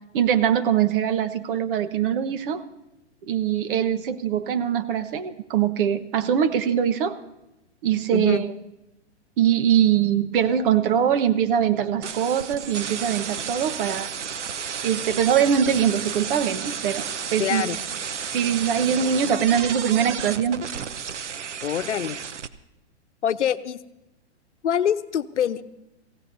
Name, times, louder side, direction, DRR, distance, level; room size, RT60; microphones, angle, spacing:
voice 1, 0.1-2.6 3.2-7.2 7.8-8.5 9.4-14.1 14.8-17.7 18.3-20.6, right 9 dB, 50° right, 11 dB, 1.2 m, -22 dB
voice 2, 8.1-8.4 17.4-17.8 21.6-22.2 23.2-23.8 24.6-25.6, left 9 dB, 80° left, 11 dB, 0.9 m, -25 dB
sound 1, 12.0-22.5, right 7 dB, 85° right, 1.0 m, -32 dB
26.5 x 16.5 x 2.7 m, 0.95 s
hypercardioid pair, 130°, 35 cm